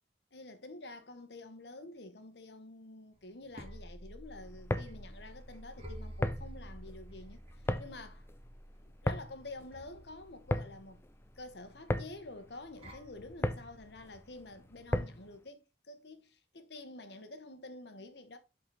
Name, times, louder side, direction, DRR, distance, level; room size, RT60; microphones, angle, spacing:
voice 1, 0.3-8.3 8.8-11.0 11.4-18.4, left 2 dB, 75° left, 1.1 m, -49 dB
sound 1, 3.2-15.1, equal, 35° right, 1.8 m, -51 dB
sound 2, 4.5-15.4, left 1 dB, 15° left, 0.4 m, -38 dB
7.8 x 4.1 x 3.8 m
head